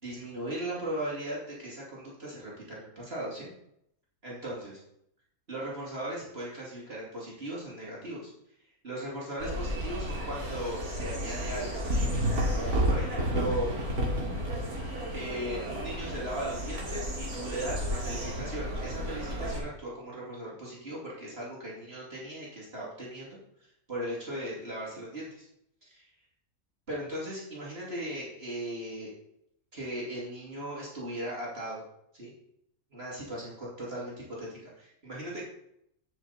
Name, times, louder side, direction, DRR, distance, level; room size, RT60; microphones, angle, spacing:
voice 1, 0.0-3.5 4.2-4.8 5.5-8.3 8.8-12.1 12.6-13.7 14.6-23.4 23.9-25.5 25.8-26.1 26.9-29.1 29.7-31.8 32.1-32.3 32.9-35.4, right 1 dB, 40° right, -6 dB, 2.9 m, -38 dB
sound 1, 9.4-19.6, equal, 80° right, 2.7 m, -31 dB
10.5 x 6.3 x 4.1 m, 0.77 s
omnidirectional pair, 1.6 m